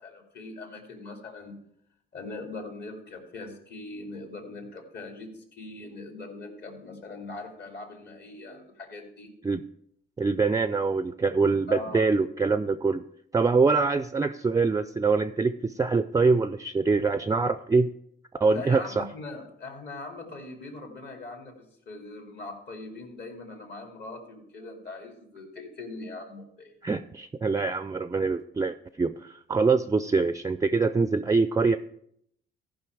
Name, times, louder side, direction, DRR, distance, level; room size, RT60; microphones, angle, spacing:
voice 1, 0.0-1.6 2.1-9.3 11.7-12.0 18.4-26.7, left 3 dB, 60° left, 3 dB, 2.5 m, -41 dB
voice 2, 10.2-13.0 13.3-17.9 18.4-19.1 26.8-31.8, right 4 dB, 15° right, 12 dB, 0.4 m, -24 dB
14.0 x 5.4 x 4.6 m, 0.70 s
cardioid pair, 90°, 20 cm